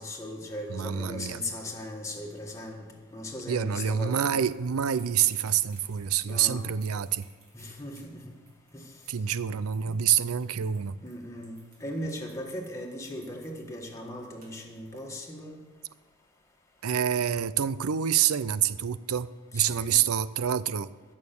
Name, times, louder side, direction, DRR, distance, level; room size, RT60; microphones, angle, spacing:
voice 1, 0.0-2.8 3.1-4.4 6.3-6.7 7.5-8.2 8.7-8.8 9.8-9.9 11.0-15.6 19.5-20.0, left 1 dB, 15° left, 0 dB, 1.8 m, -38 dB
voice 2, 0.7-1.4 3.5-7.3 9.1-11.0 16.8-20.9, right 9 dB, 90° right, 16 dB, 0.5 m, -27 dB
sound 1, 4.4-15.0, right 2 dB, 45° right, 3.8 m, -57 dB
16.0 x 6.5 x 7.1 m, 1.3 s
head